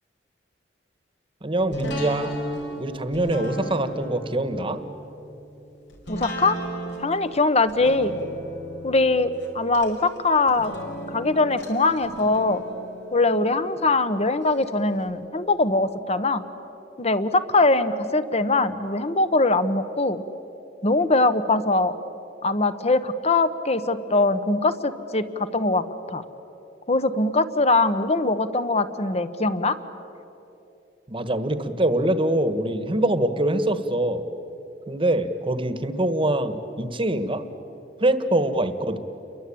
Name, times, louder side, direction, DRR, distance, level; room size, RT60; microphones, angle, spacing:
voice 1, 1.4-2.3 2.8-4.8 31.1-34.2 34.9-37.5 38.0-39.0, right 1 dB, 30° right, 11 dB, 1.4 m, -24 dB
sound 1, 1.7-14.7 15.0-15.1, equal, 80° left, 4.5 m, -36 dB
voice 2, 6.1-6.6 7.0-8.2 8.8-10.7 11.1-12.6 13.1-16.4 17.0-20.2 20.8-22.0 22.4-26.2 26.9-29.8, left 2 dB, 35° left, 12 dB, 1.1 m, -22 dB
29.5 x 23.0 x 8.7 m, 2.9 s
head